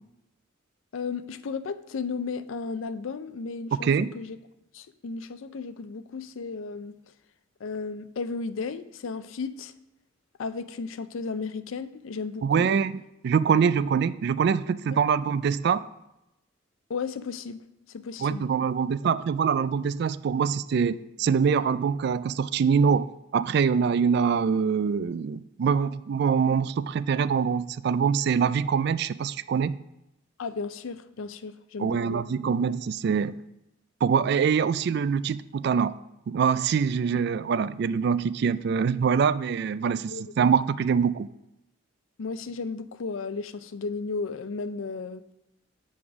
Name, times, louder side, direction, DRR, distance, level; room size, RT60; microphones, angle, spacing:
voice 1, 0.9-3.9 4.1-4.4 4.7-7.0 7.6-9.7 10.4-12.7 14.9-15.0 16.9-17.6 17.9-18.4 30.4-32.2 37.1-37.2 40.1-40.3 42.2-45.3, left 4 dB, 90° left, 13 dB, 0.5 m, -34 dB
voice 2, 12.4-15.8 18.2-23.1 23.3-29.8 31.8-33.3 34.0-36.0 36.3-41.3, right 6 dB, 55° right, 16 dB, 0.3 m, -24 dB
7.2 x 4.9 x 6.0 m, 0.90 s
head